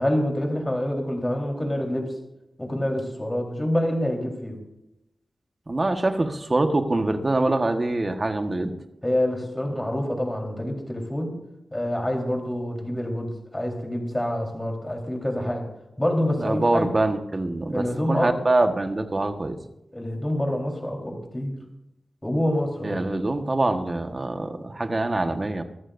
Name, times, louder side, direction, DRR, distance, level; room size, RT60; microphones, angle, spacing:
voice 1, 0.0-2.1 2.6-4.6 9.0-11.4 11.7-15.6 16.0-16.9 17.7-18.4 19.9-21.6 22.2-23.0, left 1 dB, 15° left, 1 dB, 4.1 m, -26 dB
voice 2, 5.7-8.7 16.4-19.6 22.8-25.6, right 2 dB, 35° right, 6 dB, 1.4 m, -24 dB
23.0 x 14.0 x 2.7 m, 0.88 s
wide cardioid pair, 70°, 0 cm